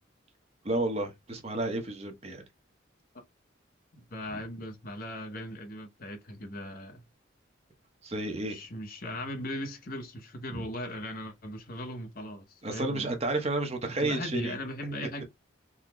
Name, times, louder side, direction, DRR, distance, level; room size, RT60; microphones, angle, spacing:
voice 1, 0.6-2.4 8.0-8.6 10.5-10.6 12.6-14.5, right 2 dB, 30° right, 0.7 m, -31 dB
voice 2, 3.9-7.0 8.5-13.2 13.9-15.2, left 1 dB, 50° left, 0.8 m, -39 dB
3.7 x 2.1 x 2.9 m
head